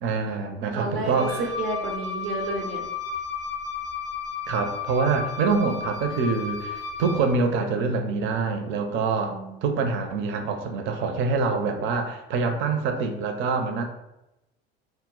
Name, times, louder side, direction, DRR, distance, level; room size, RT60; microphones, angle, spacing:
voice 1, 0.0-1.5 4.5-9.3 9.6-13.8, right 4 dB, 40° right, 5 dB, 0.4 m, -25 dB
voice 2, 0.7-1.3 1.6-2.8 9.3-9.6, right 2 dB, 90° right, 2 dB, 0.6 m, -31 dB
Wind instrument woodwind instrument, 1.0-7.4, left 5 dB, 40° left, 0.5 m, -33 dB
2.1 x 2.0 x 3.6 m, 0.92 s
hypercardioid pair, 75°, 30 cm